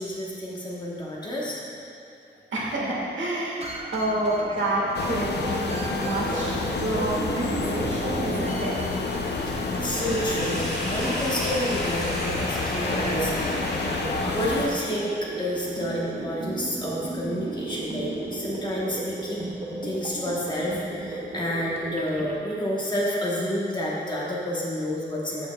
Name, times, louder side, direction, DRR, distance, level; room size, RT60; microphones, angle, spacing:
voice 1, 0.0-1.6 4.5-4.6 9.3-9.5 9.8-13.6 14.3-19.4 19.8-25.5, equal, 25° left, -5 dB, 1.1 m, -29 dB
voice 2, 2.5-8.8, right 1 dB, 85° right, -4 dB, 1.6 m, -28 dB
sound 1, 3.6-22.4, right 2 dB, 35° right, 0.6 m, -35 dB
sound 2, 4.9-14.7, left 3 dB, 60° left, 0.6 m, -29 dB
Sink (filling or washing), 9.8-14.7, equal, 5° left, 1.5 m, -34 dB
13.0 x 5.2 x 2.3 m, 2.8 s
wide cardioid pair, 180°, 19 cm